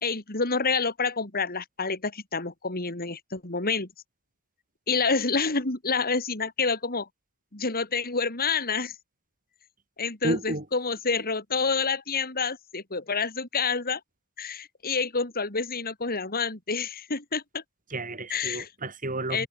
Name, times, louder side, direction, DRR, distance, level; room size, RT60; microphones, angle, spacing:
voice 1, 0.0-3.9 4.9-7.1 7.5-8.9 10.0-14.0 14.4-17.6 18.3-18.7 19.3-19.5, left 4 dB, 45° left, 3.6 m, -28 dB
voice 2, 10.2-10.6 17.9-19.5, right 1 dB, 40° right, 6.4 m, -31 dB
head